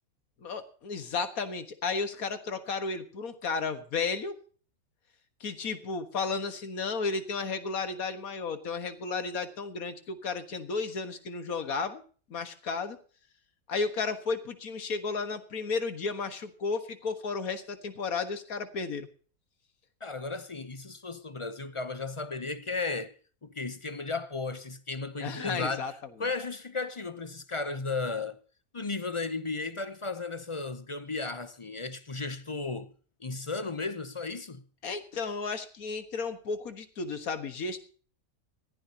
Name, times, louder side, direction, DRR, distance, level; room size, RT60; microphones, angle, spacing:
voice 1, 0.4-4.3 5.4-12.0 12.3-13.0 13.7-19.1 25.2-25.9 34.8-37.8, left 4 dB, 80° left, 2.0 m, -33 dB
voice 2, 20.0-23.1 23.4-25.9 26.2-28.4 28.7-32.9 33.2-34.6, left 3 dB, 30° left, 0.6 m, -35 dB
20.0 x 15.0 x 2.9 m
omnidirectional pair, 1.5 m